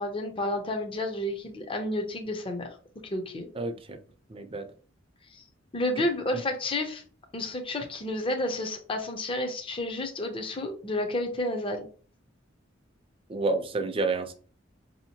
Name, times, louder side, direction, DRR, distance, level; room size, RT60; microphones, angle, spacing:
voice 1, 0.0-2.7 3.1-3.5 5.7-7.0 7.3-11.9, left 1 dB, 30° left, 4 dB, 0.6 m, -30 dB
voice 2, 3.5-4.0 4.3-4.6 13.3-14.3, right 3 dB, 30° right, 7 dB, 0.5 m, -29 dB
5.0 x 2.8 x 2.7 m, 0.40 s
head